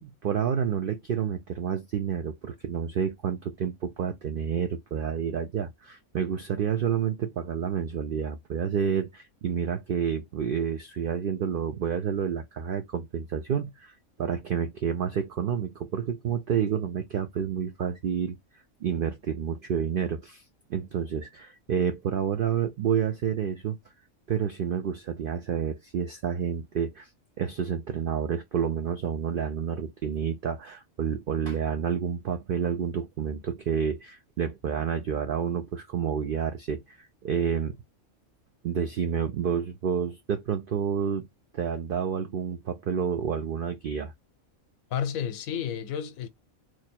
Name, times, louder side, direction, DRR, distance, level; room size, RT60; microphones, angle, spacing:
voice 1, 0.0-18.4 18.8-20.4 20.7-23.8 24.3-27.1 27.4-37.8 38.6-41.3 41.5-44.1, right 7 dB, 75° right, 0.5 m, -29 dB
voice 2, 44.9-46.3, left 8 dB, 80° left, 1.0 m, -31 dB
3.0 x 2.2 x 4.1 m
omnidirectional pair, 1.5 m